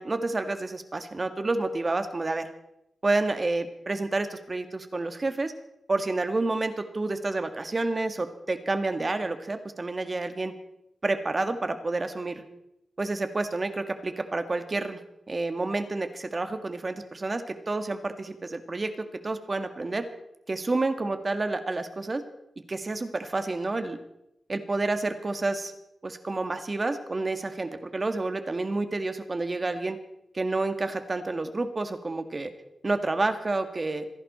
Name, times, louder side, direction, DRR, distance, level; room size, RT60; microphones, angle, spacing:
voice 1, 0.0-2.5 3.0-5.5 5.9-10.5 11.0-12.4 13.0-15.0 15.3-18.9 19.2-20.0 20.5-22.2 22.7-24.0 24.5-25.7 26.0-30.0 30.3-32.5 32.8-34.1, right 2 dB, 35° right, 8 dB, 1.9 m, -29 dB
27.0 x 11.0 x 4.3 m, 0.83 s
cardioid pair, 70°, 0 cm